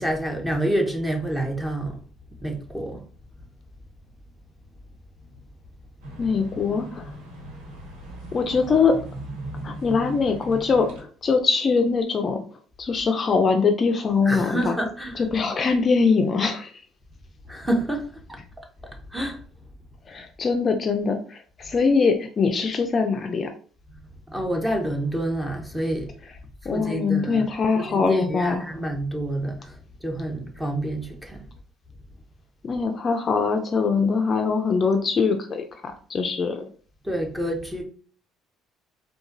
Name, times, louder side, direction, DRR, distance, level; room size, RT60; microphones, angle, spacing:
voice 1, 0.0-2.0 2.4-3.0 14.2-15.3 17.5-18.4 19.1-19.4 24.3-26.1 26.6-27.5 27.7-31.5 37.0-37.8, right 1 dB, 10° right, 0.8 m, -28 dB
sound 1, 6.0-11.0, right 1 dB, 90° right, 1.2 m, -38 dB
voice 2, 6.2-7.1 8.3-9.0 9.6-12.4 12.8-14.8 15.2-16.7 20.1-23.5 26.6-28.7 32.6-36.7, left 5 dB, 35° left, 0.4 m, -22 dB
3.9 x 2.2 x 2.6 m
cardioid pair, 105°, 0 cm